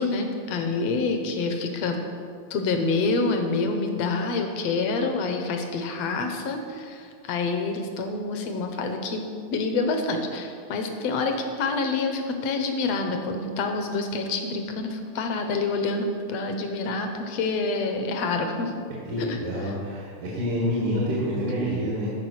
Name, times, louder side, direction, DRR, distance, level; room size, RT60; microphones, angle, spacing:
voice 1, 0.0-2.0 2.5-9.3 9.5-18.7 19.2-19.7, left 3 dB, 65° left, 5 dB, 1.8 m, -27 dB
voice 2, 18.9-22.1, equal, 80° right, -5 dB, 3.4 m, -27 dB
14.0 x 4.9 x 6.4 m, 2.3 s
omnidirectional pair, 3.5 m